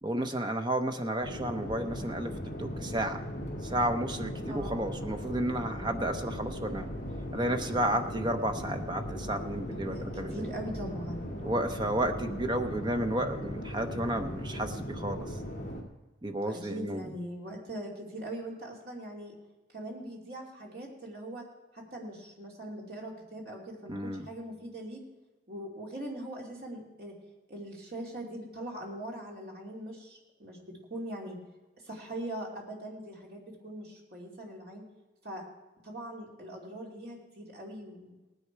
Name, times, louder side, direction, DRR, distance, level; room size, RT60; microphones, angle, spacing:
voice 1, 0.0-2.3 2.6-3.2 3.6-6.9 7.3-10.4 11.4-15.3 16.2-17.0 23.9-24.2, right 1 dB, 25° right, 6 dB, 0.8 m, -32 dB
sound 1, 1.2-15.8, equal, 40° left, 2.2 m, -38 dB
voice 2, 4.5-4.9 7.9-8.2 9.8-11.3 16.4-19.3 19.7-21.5 21.7-25.0 25.5-27.1 27.5-31.4 31.8-34.8 35.2-35.4 35.8-38.2, right 1 dB, 55° right, -2 dB, 2.6 m, -41 dB
18.0 x 10.0 x 4.6 m, 1.1 s
head